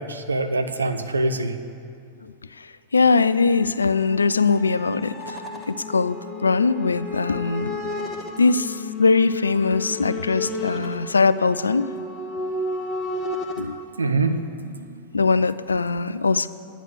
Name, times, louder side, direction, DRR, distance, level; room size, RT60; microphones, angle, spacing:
voice 1, 0.0-1.6 14.0-15.0, right 2 dB, 75° right, 8 dB, 0.6 m, -25 dB
voice 2, 2.2-7.8 8.4-11.9 13.6-13.8 15.1-16.5, left 4 dB, 75° left, 15 dB, 0.3 m, -21 dB
sound 1, 3.0-13.6, left 2 dB, 25° left, 1.3 m, -33 dB
10.0 x 9.0 x 6.4 m, 2.5 s
figure-of-eight pair, 90°, 0 cm